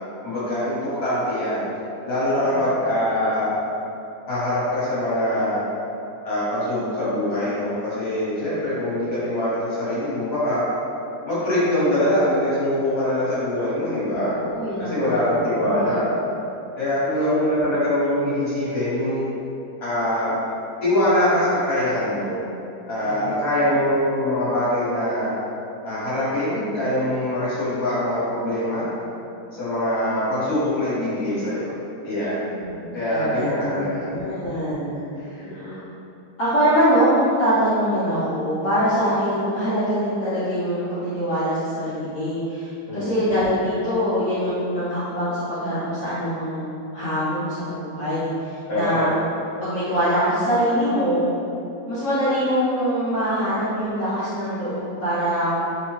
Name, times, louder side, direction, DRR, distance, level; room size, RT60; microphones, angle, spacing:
voice 1, 0.2-1.7 2.0-3.6 4.3-5.6 6.2-10.6 11.2-14.3 14.8-16.0 16.8-19.2 19.8-20.3 20.8-22.3 22.9-25.4 25.8-28.9 29.5-31.7 32.0-32.5 32.9-34.4 35.4-35.7 42.9-43.2 48.7-49.1, left 1 dB, 45° left, -11 dB, 1.2 m, -23 dB
voice 2, 14.1-16.0 23.0-23.3 32.6-35.8 36.4-49.1 49.6-51.3 51.9-55.5, equal, 60° left, -13 dB, 0.8 m, -24 dB
2.9 x 2.1 x 3.0 m, 2.7 s
omnidirectional pair, 1.8 m